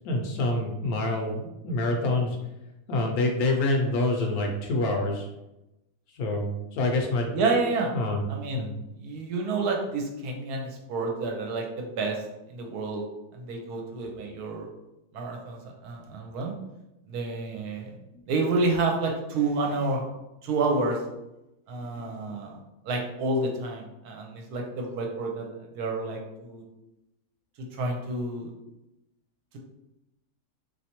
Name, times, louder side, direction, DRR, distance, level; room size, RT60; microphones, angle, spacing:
voice 1, 0.0-2.4 2.9-5.3 6.1-7.3 7.9-8.2 8.5-8.7, left 2 dB, 70° left, 2 dB, 1.0 m, -26 dB
voice 2, 7.3-7.9 8.3-8.6 9.0-12.2 12.5-13.0 13.3-14.7 15.1-16.5 17.1-17.9 18.3-20.1 20.4-21.0 21.7-22.6 22.8-25.5 25.7-26.6 27.7-28.5, right 3 dB, 75° right, 1 dB, 1.1 m, -29 dB
3.3 x 2.7 x 2.8 m, 0.94 s
omnidirectional pair, 1.8 m